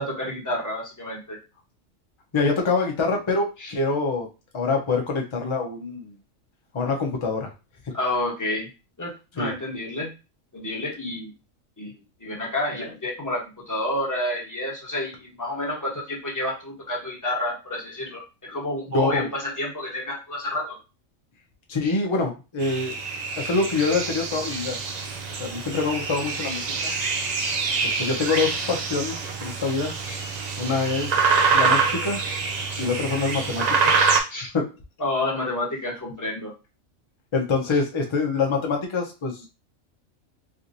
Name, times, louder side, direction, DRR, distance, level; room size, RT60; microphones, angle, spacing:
voice 1, 0.0-1.4 3.6-3.7 7.9-8.7 9.0-10.1 10.5-11.3 11.8-11.9 12.2-20.8 21.8-21.9 27.4-27.6 30.0-30.2 32.7-32.9 34.3-34.5 35.0-36.5, left 1 dB, 15° left, -4 dB, 1.1 m, -29 dB
voice 2, 2.3-4.3 4.5-6.1 6.7-7.5 9.4-9.5 18.9-19.3 21.7-22.9 23.4-24.8 25.4-26.9 27.8-29.9 30.6-32.2 32.8-33.9 34.5-34.7 37.3-39.5, left 4 dB, 30° left, 2 dB, 0.5 m, -25 dB
sound 1, 22.6-34.2, right 5 dB, 75° right, 0.3 m, -25 dB
3.4 x 2.9 x 2.6 m, 0.30 s
omnidirectional pair, 1.4 m